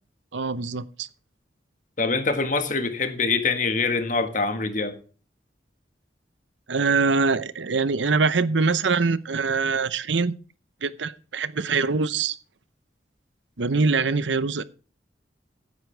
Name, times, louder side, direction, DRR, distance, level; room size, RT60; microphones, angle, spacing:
voice 1, 0.3-1.1 6.7-10.3 10.8-12.4 13.6-14.6, right 4 dB, 85° right, 0.8 m, -23 dB
voice 2, 2.0-5.0, left 4 dB, 45° left, 1.7 m, -24 dB
15.5 x 9.4 x 3.4 m
head